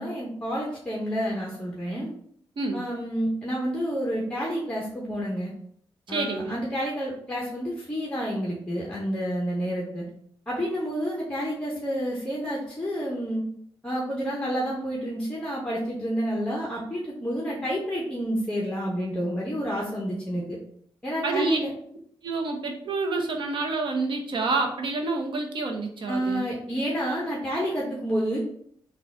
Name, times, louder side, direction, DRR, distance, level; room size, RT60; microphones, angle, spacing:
voice 1, 0.0-2.1 2.7-5.5 6.1-10.0 10.5-13.4 13.8-20.6 21.0-21.7 26.1-28.4, equal, 10° left, -4 dB, 0.8 m, -29 dB
voice 2, 6.1-6.6 21.2-21.6 22.2-26.4, right 3 dB, 65° right, 3 dB, 0.8 m, -28 dB
3.9 x 2.3 x 3.5 m, 0.64 s
cardioid pair, 100°, 9 cm